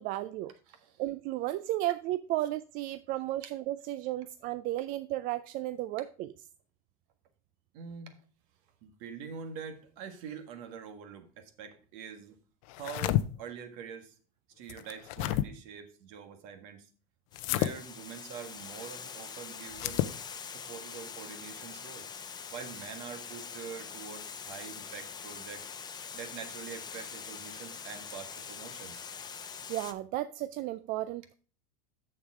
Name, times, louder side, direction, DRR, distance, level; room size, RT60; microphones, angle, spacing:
voice 1, 0.0-0.5 1.0-6.3 29.7-31.3, right 15 dB, 50° right, 14 dB, 0.4 m, -34 dB
voice 2, 0.7-1.0 7.7-8.1 8.8-12.4 12.8-14.1 14.6-16.9 17.5-20.1 20.4-22.1 22.5-25.6 26.1-29.0, right 7 dB, 65° right, 8 dB, 1.6 m, -45 dB
sound 1, 12.7-13.2 14.7-15.5 17.3-17.7 19.7-20.1, left 14 dB, 65° left, 0.6 m, -29 dB
Water, 17.3-29.9, left 6 dB, 20° left, 0.8 m, -44 dB
6.9 x 6.6 x 4.8 m, 0.39 s
supercardioid pair, 115°, 19 cm